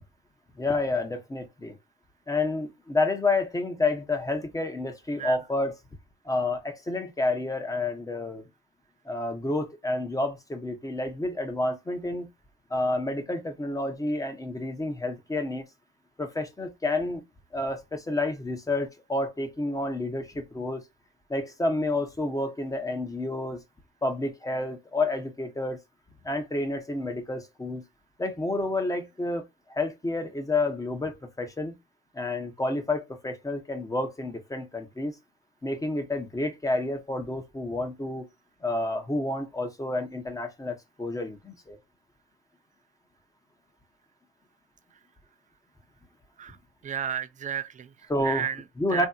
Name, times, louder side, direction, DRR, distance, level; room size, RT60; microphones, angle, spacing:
voice 1, 0.6-1.8 2.3-5.7 6.2-8.4 9.1-12.3 12.7-15.6 16.2-17.2 17.5-20.8 21.3-23.6 24.0-25.8 26.2-27.8 28.2-29.4 29.7-31.8 32.1-35.1 35.6-38.3 38.6-41.8 48.1-48.5 48.8-49.1, left 2 dB, 15° left, 0.8 m, -29 dB
voice 2, 46.8-48.6 48.9-49.1, right 9 dB, 40° right, 0.4 m, -32 dB
3.4 x 2.7 x 2.3 m
cardioid pair, 90°, 20 cm